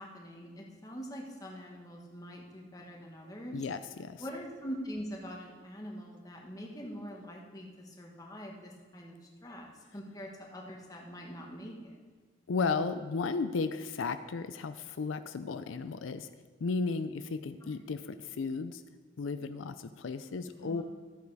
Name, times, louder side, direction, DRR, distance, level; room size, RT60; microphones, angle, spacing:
voice 1, 0.0-3.7 4.2-9.2 9.4-11.9 17.6-17.7 20.5-20.8, equal, 20° left, 0 dB, 1.4 m, -44 dB
voice 2, 3.5-4.2 12.5-16.3 16.6-18.8 19.2-20.8, left 4 dB, 80° left, 10 dB, 0.4 m, -34 dB
13.0 x 8.2 x 4.7 m, 1.5 s
head